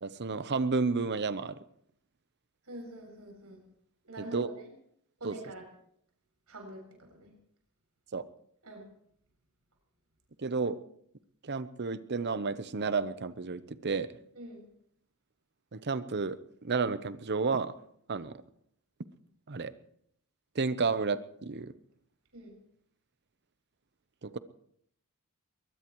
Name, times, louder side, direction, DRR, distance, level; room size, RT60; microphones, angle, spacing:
voice 1, 0.0-1.6 4.3-4.5 5.2-5.3 8.1-8.2 10.4-10.8 11.4-14.1 15.7-17.7 18.1-18.4 19.5-19.7 20.5-21.7 24.2-24.4, right 4 dB, 50° right, 14 dB, 0.8 m, -31 dB
voice 2, 2.6-3.6 4.0-4.7 5.2-5.7 6.5-7.3 8.6-8.8 14.4-14.7 22.3-22.6, right 1 dB, 75° right, 2 dB, 7.1 m, -45 dB
22.5 x 20.0 x 3.1 m, 0.68 s
head